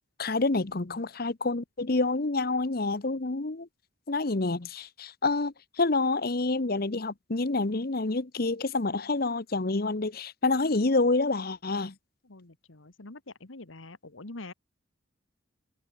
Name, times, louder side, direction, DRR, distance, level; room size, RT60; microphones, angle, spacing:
voice 1, 0.2-3.7 4.1-11.9, left 3 dB, 50° left, 1.0 m, -28 dB
voice 2, 12.3-14.5, left 2 dB, 75° left, 1.7 m, -45 dB
head